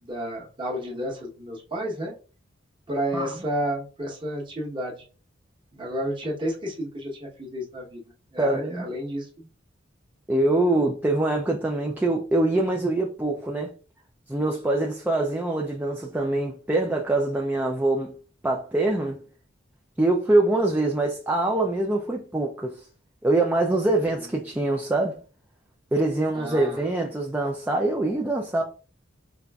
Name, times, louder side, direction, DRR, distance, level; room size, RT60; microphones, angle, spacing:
voice 1, 0.0-2.1 2.9-5.0 5.7-8.0 8.3-9.5 24.1-24.6 26.3-26.9 28.0-28.2, equal, 25° right, 0.9 m, -32 dB
voice 2, 8.4-8.9 10.3-13.7 14.3-18.1 18.4-19.2 20.0-22.8 23.2-25.2 25.9-28.6, right 2 dB, 10° right, 0.3 m, -24 dB
5.0 x 2.4 x 2.3 m
head